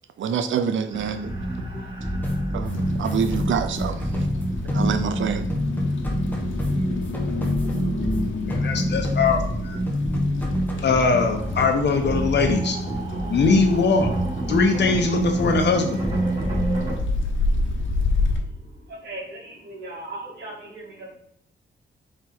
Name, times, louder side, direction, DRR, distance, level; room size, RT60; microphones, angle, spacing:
voice 1, 0.2-1.9 2.5-4.3 4.7-5.5, right 7 dB, 85° right, 0.6 m, -27 dB
sound 1, 0.9-16.9, right 1 dB, 30° right, 2.0 m, -28 dB
sound 2, 2.2-5.2 5.5-8.2 8.5-9.6 9.9-10.9, left 2 dB, 10° left, 1.3 m, -29 dB
sound 3, 2.6-18.4, left 3 dB, 90° left, 1.2 m, -31 dB
voice 2, 8.5-9.8 10.8-12.8 13.3-14.1 14.5-16.1, left 4 dB, 65° left, 1.1 m, -21 dB
voice 3, 19.0-20.8, right 2 dB, 65° right, 2.4 m, -37 dB
6.1 x 4.4 x 4.3 m
wide cardioid pair, 155°, 19 cm